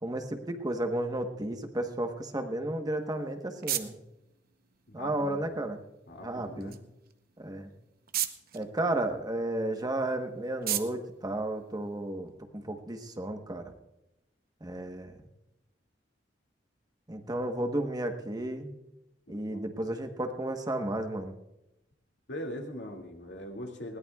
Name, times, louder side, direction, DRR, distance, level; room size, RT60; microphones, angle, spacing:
voice 1, 0.0-4.0 4.9-5.8 6.2-6.7 7.4-7.7 8.5-13.7 14.6-15.1 17.1-18.7 19.3-21.3, right 1 dB, 20° right, 5 dB, 1.2 m, -33 dB
sound 1, 2.9-12.3, right 11 dB, 55° right, 0.8 m, -40 dB
voice 2, 4.9-5.4 6.1-6.8 19.3-19.6 22.3-24.0, left 1 dB, 85° left, 1 dB, 2.3 m, -41 dB
20.5 x 17.5 x 2.4 m, 0.89 s
head